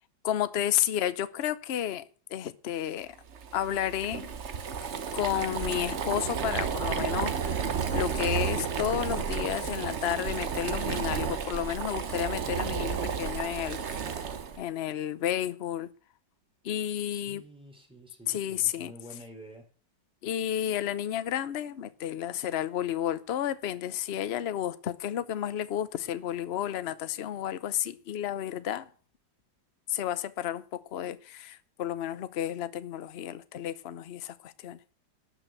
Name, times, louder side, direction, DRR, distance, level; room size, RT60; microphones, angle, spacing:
voice 1, 0.2-2.0 2.3-3.2 3.5-4.3 5.1-13.8 14.6-15.9 16.6-17.4 18.3-18.9 20.2-28.9 29.9-34.8, left 11 dB, 55° left, 0.7 m, -32 dB
Boiling, 3.3-14.6, right 6 dB, 45° right, 1.1 m, -32 dB
voice 2, 17.1-19.7, equal, 5° right, 3.8 m, -49 dB
12.0 x 6.3 x 7.9 m
omnidirectional pair, 2.0 m